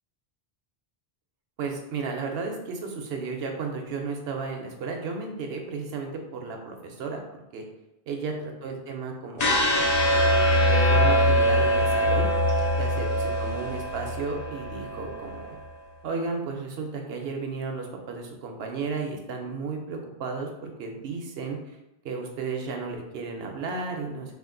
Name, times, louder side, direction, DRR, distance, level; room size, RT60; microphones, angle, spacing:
voice 1, 1.6-7.2 7.5-7.6 8.1-9.8 10.6-12.3 12.8-15.5 16.0-21.6 22.0-24.3, right 4 dB, 75° right, 2 dB, 0.9 m, -33 dB
sound 1, 9.4-15.5, equal, 45° left, 0.7 m, -23 dB
3.5 x 2.5 x 3.7 m, 0.93 s
omnidirectional pair, 1.1 m